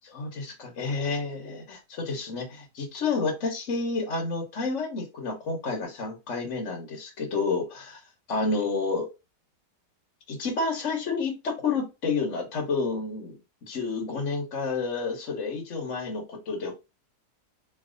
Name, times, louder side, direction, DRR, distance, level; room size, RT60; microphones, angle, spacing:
voice 1, 0.0-8.0 8.3-9.1 10.3-13.4 13.7-16.7, left 4 dB, 50° left, 1 dB, 1.3 m, -30 dB
3.2 x 2.9 x 3.8 m, 0.27 s
omnidirectional pair, 1.8 m